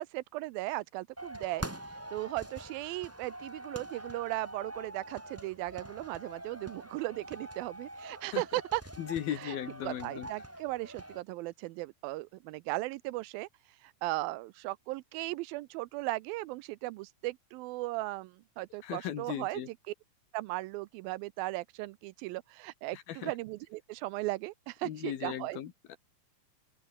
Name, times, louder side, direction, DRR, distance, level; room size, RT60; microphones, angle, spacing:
voice 1, 0.0-1.7 2.1-8.8 9.3-9.6 9.8-13.5 13.8-19.9 20.3-25.6, right 19 dB, 80° right, 2.2 m, -37 dB
sound 1, 1.2-11.2, right 1 dB, 5° right, 1.1 m, -45 dB
voice 2, 9.0-10.3 18.8-19.7 22.9-23.3 24.8-26.0, left 11 dB, 70° left, 3.6 m, -37 dB
open air
omnidirectional pair, 4.5 m